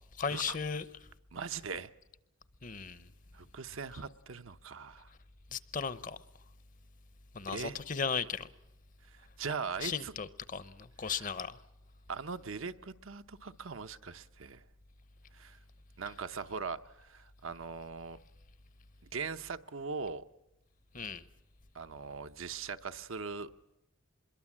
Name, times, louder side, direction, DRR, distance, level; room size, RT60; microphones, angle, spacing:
voice 1, 0.2-0.8 2.6-3.1 5.5-6.2 7.3-8.5 9.8-11.6 20.9-21.3, left 5 dB, 40° left, 0.8 m, -36 dB
voice 2, 1.3-1.9 3.3-5.1 7.5-7.8 9.4-10.1 11.0-11.3 12.1-14.6 15.3-15.6 16.0-18.2 19.1-20.2 21.7-23.5, right 5 dB, 75° right, 0.8 m, -40 dB
25.0 x 22.0 x 7.4 m
head